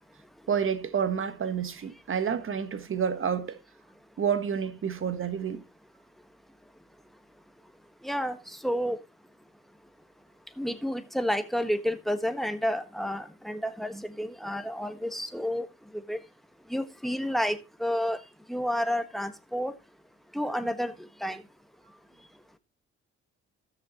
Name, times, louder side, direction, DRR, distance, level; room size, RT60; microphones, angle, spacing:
voice 1, 0.5-3.6 4.2-5.6, right 7 dB, 45° right, 1.4 m, -29 dB
voice 2, 8.0-8.4 8.6-9.0 10.6-15.7 16.1-16.2 16.7-18.2 18.5-19.7 20.3-20.9 21.2-21.4, equal, ahead, 1.3 m, -30 dB
16.5 x 6.5 x 3.0 m
cardioid pair, 90°, 30 cm